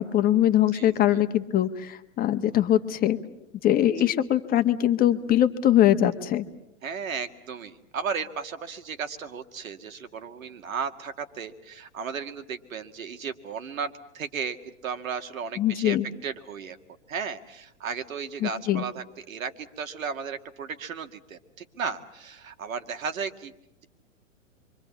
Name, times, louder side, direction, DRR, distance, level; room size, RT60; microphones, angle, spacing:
voice 1, 0.0-3.2 3.6-6.4 15.6-16.1 18.4-18.8, left 12 dB, 20° left, 9 dB, 1.3 m, -22 dB
voice 2, 0.7-1.2 4.0-4.1 6.8-16.0 16.2-16.8 17.1-23.5, right 6 dB, 80° right, 8 dB, 2.2 m, -35 dB
27.5 x 24.5 x 7.2 m, 0.84 s
hypercardioid pair, 130°, 40 cm